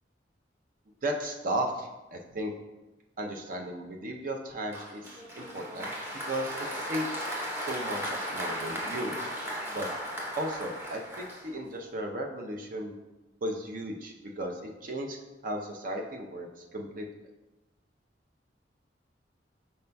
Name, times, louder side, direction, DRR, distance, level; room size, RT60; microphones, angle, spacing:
voice 1, 1.0-2.5 3.2-5.9 6.2-7.1 7.7-9.2 9.7-9.9 10.4-13.0 13.4-15.2 15.4-17.3, right 1 dB, 50° right, 2 dB, 0.6 m, -35 dB
Applause, 4.7-11.8, equal, 15° right, 0.7 m, -36 dB
5.4 x 4.3 x 2.2 m, 1.1 s
head